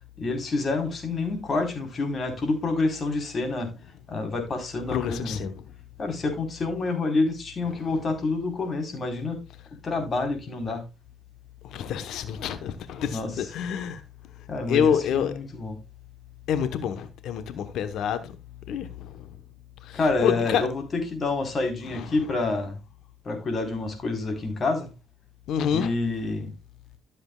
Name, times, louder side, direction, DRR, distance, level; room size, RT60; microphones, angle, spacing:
voice 1, 0.2-3.7 4.1-5.4 6.0-9.4 9.8-10.8 13.1-13.5 14.5-15.8 19.9-22.8 23.2-24.9 25.7-26.5, left 3 dB, 40° left, 4.1 m, -28 dB
voice 2, 4.9-5.5 7.7-7.9 11.7-14.0 14.7-15.3 16.5-18.3 18.7-19.3 19.8-20.6 21.9-22.1 25.5-25.9, left 8 dB, 80° left, 1.1 m, -27 dB
13.0 x 7.7 x 2.3 m
cardioid pair, 90°, 0 cm